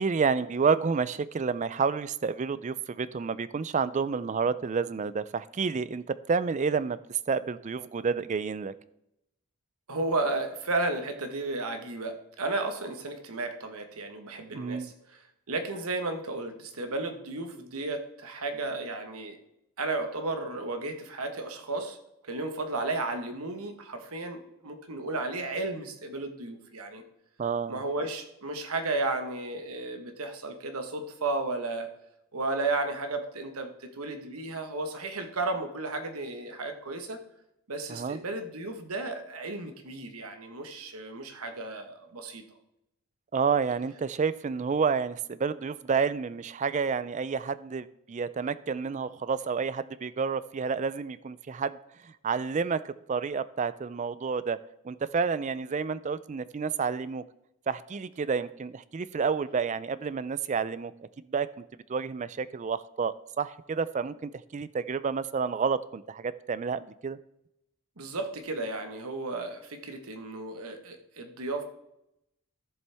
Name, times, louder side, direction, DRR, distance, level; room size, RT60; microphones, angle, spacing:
voice 1, 0.0-8.7 14.5-14.9 27.4-27.8 37.9-38.2 43.3-51.8 52.0-54.6 54.8-57.2 57.7-60.9 61.3-61.6 61.9-67.2, right 5 dB, 35° right, 16 dB, 0.3 m, -30 dB
voice 2, 9.9-14.9 15.5-19.4 19.8-22.0 22.2-27.0 27.7-31.9 32.3-37.2 37.7-42.4 68.0-71.6, right 2 dB, 85° right, 6 dB, 1.2 m, -33 dB
13.5 x 7.1 x 3.4 m, 0.84 s
head